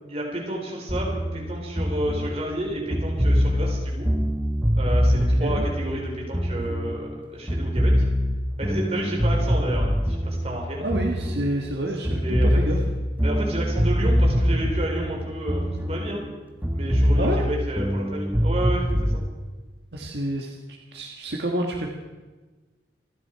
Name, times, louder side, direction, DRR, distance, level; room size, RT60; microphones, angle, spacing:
voice 1, 0.1-4.1 4.8-8.0 8.6-10.8 12.2-12.5 13.2-16.2 16.7-19.2, right 1 dB, 35° right, -1 dB, 4.3 m, -31 dB
sound 1, 0.9-7.2 7.5-11.8 12.0-16.3 16.6-19.2, equal, 10° right, 1.4 m, -23 dB
voice 2, 10.8-12.8 17.2-17.4 19.9-20.6 20.9-21.9, right 1 dB, 70° right, 0 dB, 1.6 m, -28 dB
27.5 x 10.5 x 4.7 m, 1.3 s
head